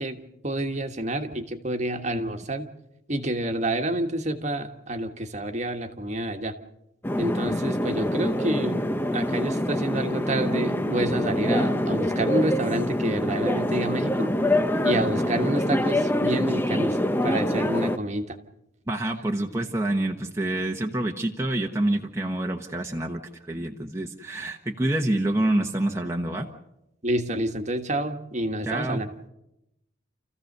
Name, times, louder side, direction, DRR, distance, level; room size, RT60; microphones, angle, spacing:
voice 1, 0.0-2.7 3.1-6.5 7.2-8.8 9.1-14.3 14.8-17.0 17.2-18.4 27.0-29.1, right 1 dB, 35° right, 6 dB, 1.5 m, -28 dB
sound 1, 7.0-18.0, left 1 dB, 10° left, 0.8 m, -25 dB
voice 2, 18.9-23.2 23.5-26.5 28.6-29.0, right 1 dB, 15° right, 1 dB, 1.1 m, -27 dB
29.0 x 15.0 x 6.7 m, 0.87 s
head